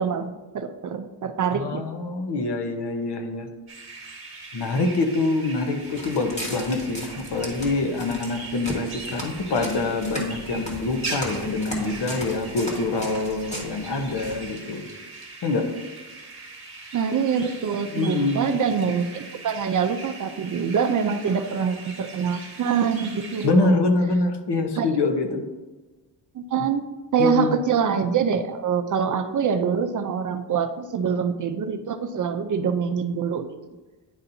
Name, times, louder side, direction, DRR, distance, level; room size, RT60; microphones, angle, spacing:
voice 1, 0.0-1.8 16.9-23.8 24.8-24.9 26.3-26.8 27.1-33.5, right 6 dB, 45° right, 8 dB, 0.4 m, -25 dB
voice 2, 1.5-3.5 4.5-14.8 15.4-15.7 17.9-18.6 23.4-25.4 27.2-27.5, left 3 dB, 65° left, 5 dB, 0.9 m, -25 dB
sound 1, 3.7-23.5, right 3 dB, 30° right, 1.3 m, -40 dB
Walk footsteps, 5.8-14.5, equal, 15° left, 1.3 m, -37 dB
10.0 x 4.2 x 2.6 m, 1.2 s
wide cardioid pair, 155°, 43 cm